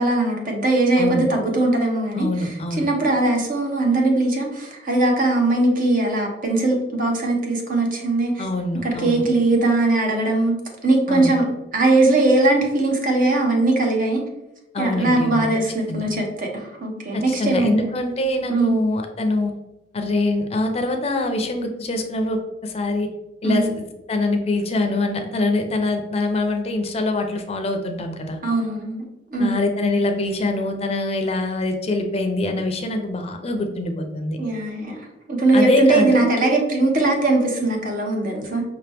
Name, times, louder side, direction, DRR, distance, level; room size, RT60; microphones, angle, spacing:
voice 1, 0.0-8.4 8.8-10.6 10.8-11.4 11.7-14.2 14.8-17.9 18.5-18.8 23.4-23.7 28.4-29.0 29.3-29.5 34.4-35.0 35.3-38.6, right 2 dB, 50° right, 1 dB, 0.9 m, -20 dB
voice 2, 1.0-1.3 2.1-2.9 8.4-9.3 11.1-11.3 14.7-15.5 15.9-16.1 17.1-19.5 19.9-23.1 23.4-23.8 24.1-28.4 29.4-34.4 35.5-36.3, left 2 dB, 35° left, 5 dB, 0.5 m, -24 dB
5.4 x 2.9 x 3.4 m, 0.96 s
head